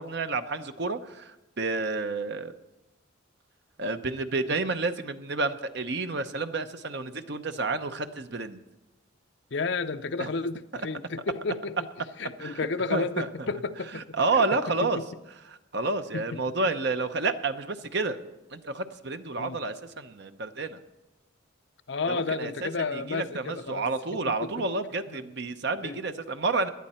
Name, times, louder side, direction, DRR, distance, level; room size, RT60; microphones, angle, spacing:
voice 1, 0.0-2.5 3.8-8.6 10.2-10.3 10.7-10.8 12.4-13.5 13.9-15.0 15.5-18.2 18.5-20.8 22.1-26.7, right 3 dB, 55° right, 0.8 m, -30 dB
voice 2, 9.5-11.8 12.2-14.0 14.3-14.4 15.0-15.1 16.1-16.4 19.4-19.6 21.9-23.9 24.4-24.5 25.1-25.2 25.8-26.0, left 4 dB, 55° left, 0.6 m, -31 dB
17.5 x 11.0 x 4.3 m
head